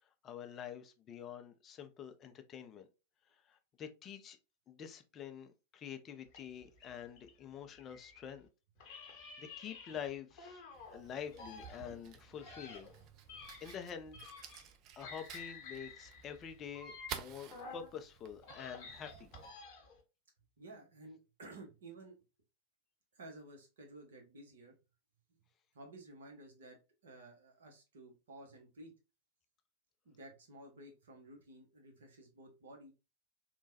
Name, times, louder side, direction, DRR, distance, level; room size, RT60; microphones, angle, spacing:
voice 1, 0.2-2.9 3.5-4.4 4.7-8.5 9.4-10.6 10.9-12.9 13.6-14.2 15.0-19.3, left 8 dB, 30° left, 0.4 m, -47 dB
sound 1, 6.3-8.4 8.8-11.0 11.3-14.7 15.0-17.9 18.3-20.0, left 4 dB, 45° left, 0.8 m, -52 dB
Fire, 10.7-19.5, right 9 dB, 40° right, 0.4 m, -52 dB
voice 2, 20.6-22.2 23.1-24.7 25.7-28.9 30.0-32.9, right 2 dB, 60° right, 1.0 m, -54 dB
3.1 x 2.2 x 2.6 m
figure-of-eight pair, 90°, 0 cm